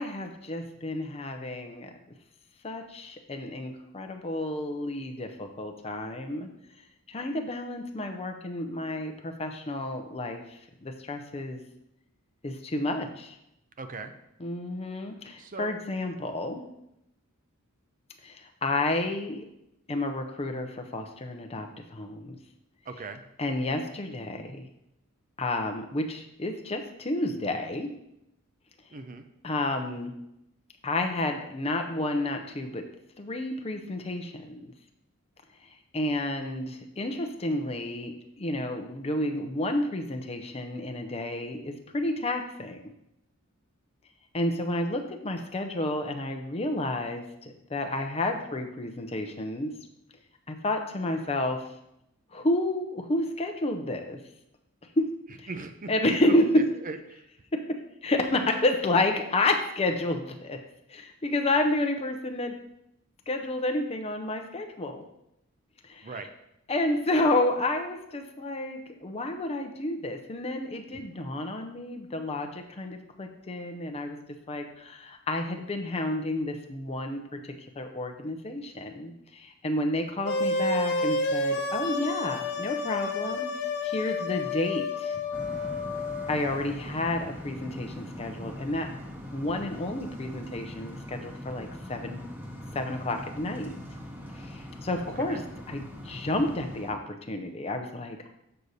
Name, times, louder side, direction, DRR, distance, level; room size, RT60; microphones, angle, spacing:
voice 1, 0.0-1.9 2.6-6.5 7.1-11.6 12.4-13.4 14.4-16.6 18.2-19.5 19.9-22.4 23.4-24.6 25.4-27.9 29.4-30.1 30.8-32.9 33.2-34.7 35.9-42.8 44.3-49.7 50.5-51.6 52.3-54.2 55.0-55.1 55.4-55.5 55.9-56.6 58.0-60.6 60.9-62.6 63.3-65.0 65.8-66.2 66.7-74.2 74.5-77.2 77.8-83.5 83.8-85.2 86.3-88.9 89.3-92.2 92.7-93.7 94.4-95.4 95.7-98.3, left 1 dB, 30° left, 4 dB, 0.6 m, -30 dB
voice 2, 13.8-14.1 15.4-15.7 22.9-23.2 28.9-29.2 55.5-57.2 58.3-58.5 66.0-66.3 70.9-71.0 95.2-95.4, right 3 dB, 40° right, 8 dB, 0.6 m, -39 dB
sound 1, 80.2-86.4, left 3 dB, 55° left, 0.9 m, -30 dB
sound 2, 85.3-96.9, equal, 10° right, 1.0 m, -41 dB
6.7 x 6.4 x 4.1 m, 0.82 s
head